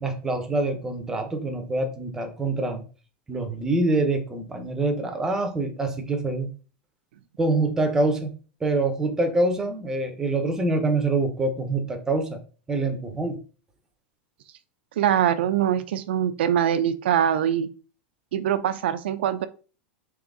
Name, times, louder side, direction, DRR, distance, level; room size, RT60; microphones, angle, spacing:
voice 1, 0.0-2.8 3.3-6.5 7.4-8.3 8.6-12.4 12.7-13.4, right 2 dB, 10° right, 5 dB, 0.6 m, -25 dB
voice 2, 15.0-17.7 18.3-19.5, right 9 dB, 85° right, 11 dB, 0.4 m, -23 dB
3.8 x 3.0 x 3.5 m, 0.36 s
supercardioid pair, 160°, 6 cm